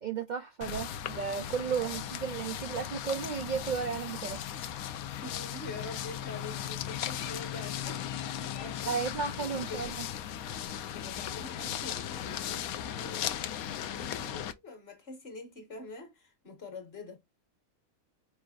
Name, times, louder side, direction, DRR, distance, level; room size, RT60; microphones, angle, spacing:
voice 1, 0.0-4.5 8.9-9.9, right 6 dB, 80° right, 0.4 m, -34 dB
sound 1, 0.6-14.5, left 10 dB, 80° left, 1.0 m, -37 dB
voice 2, 1.7-2.1 5.2-8.0 8.4-10.0 10.9-13.5 13.8-17.2, left 3 dB, 45° left, 1.5 m, -45 dB
4.7 x 3.3 x 2.3 m
omnidirectional pair, 1.5 m